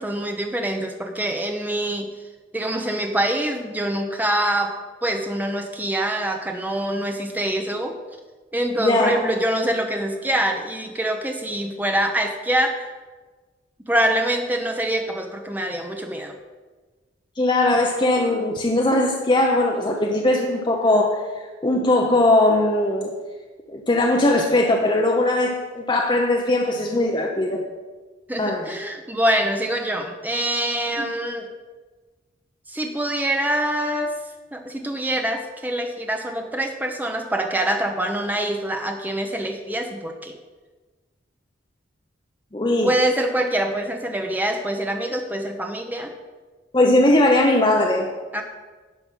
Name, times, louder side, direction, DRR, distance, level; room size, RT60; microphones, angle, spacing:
voice 1, 0.0-2.1 2.5-4.7 5.0-8.0 8.5-12.9 13.9-16.4 28.3-31.5 32.7-34.1 34.5-40.3 42.8-46.1 48.3-48.4, right 1 dB, 10° right, 4 dB, 0.8 m, -25 dB
voice 2, 8.8-9.2 17.4-21.2 21.6-23.1 23.7-27.6 28.4-28.7 31.0-31.1 42.5-42.9 46.7-48.1, left 1 dB, 25° left, 1 dB, 0.7 m, -19 dB
11.0 x 5.8 x 5.5 m, 1.3 s
head